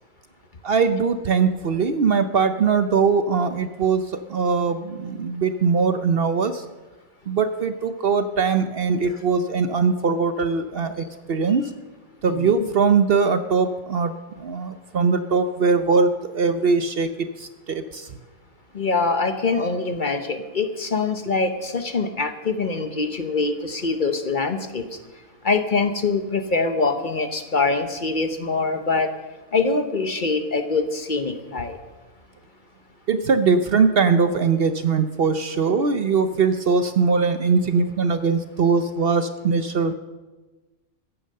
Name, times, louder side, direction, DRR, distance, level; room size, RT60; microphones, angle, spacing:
voice 1, 0.6-6.6 7.3-11.6 12.2-14.1 14.4-18.1 33.1-39.9, right 5 dB, 55° right, 10 dB, 0.8 m, -21 dB
voice 2, 12.3-12.7 18.7-24.8 25.4-29.1 29.5-31.8, left 4 dB, 40° left, 8 dB, 1.0 m, -24 dB
14.5 x 10.0 x 6.6 m, 1.2 s
omnidirectional pair, 1.4 m